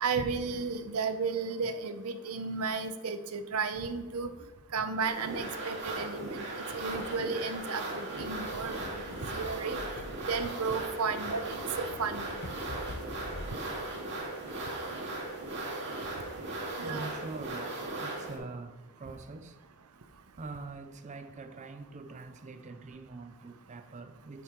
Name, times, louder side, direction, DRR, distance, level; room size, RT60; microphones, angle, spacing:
voice 1, 0.0-4.3 4.7-9.8 10.3-12.3 16.8-17.1, right 4 dB, 80° right, 0.7 m, -34 dB
sound 1, 5.0-18.4, right 2 dB, 55° right, 2.4 m, -38 dB
sound 2, 8.1-13.9, left 2 dB, 50° left, 0.6 m, -46 dB
voice 2, 16.3-19.6 20.4-24.4, right 3 dB, 35° right, 0.5 m, -44 dB
8.2 x 5.5 x 4.5 m
head